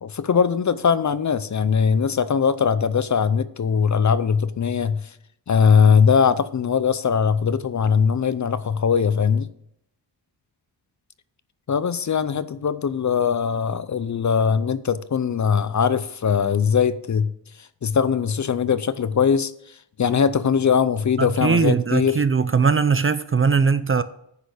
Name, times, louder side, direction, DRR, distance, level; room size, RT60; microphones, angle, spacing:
voice 1, 0.0-5.0 5.5-9.5 11.7-17.3 17.8-19.5 20.0-22.2, left 6 dB, 45° left, 0.5 m, -20 dB
voice 2, 21.2-24.0, right 5 dB, 30° right, 0.4 m, -20 dB
9.8 x 6.4 x 6.6 m
wide cardioid pair, 145°, 43 cm